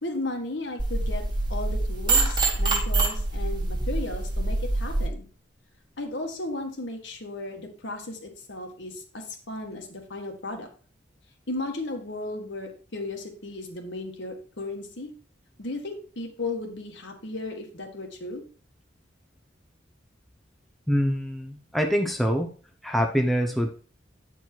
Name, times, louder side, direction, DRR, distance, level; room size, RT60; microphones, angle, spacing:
voice 1, 0.0-1.2 1.5-5.3 6.0-10.7 11.5-15.1 15.6-18.4, left 2 dB, 70° left, 3 dB, 1.8 m, -35 dB
sound 1, 0.8-5.1, right 2 dB, 25° right, 1.5 m, -25 dB
voice 2, 20.9-22.5 22.8-23.7, equal, ahead, 2 dB, 0.7 m, -25 dB
9.1 x 4.6 x 4.5 m, 0.41 s
head